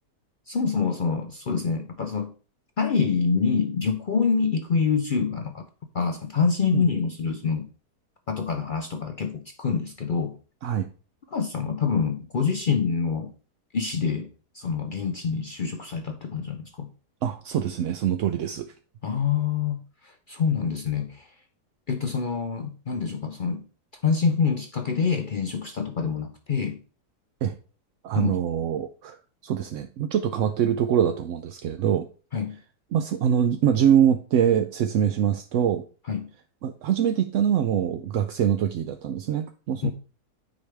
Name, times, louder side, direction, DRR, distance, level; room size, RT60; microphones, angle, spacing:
voice 1, 0.5-2.3 2.8-5.7 5.9-7.7 8.3-10.4 11.3-13.3 13.7-14.3 14.5-16.9 19.0-21.3 21.9-23.6 24.0-26.8 28.1-28.4 32.3-32.6 36.1-36.3 39.8-39.9, left 5 dB, 75° left, 6 dB, 0.4 m, -26 dB
voice 2, 17.2-18.7 27.4-27.5 28.0-29.2 29.4-32.1 32.9-35.8 36.6-39.9, right 9 dB, 70° right, 7 dB, 0.7 m, -24 dB
9.5 x 4.8 x 3.4 m, 0.37 s
omnidirectional pair, 1.7 m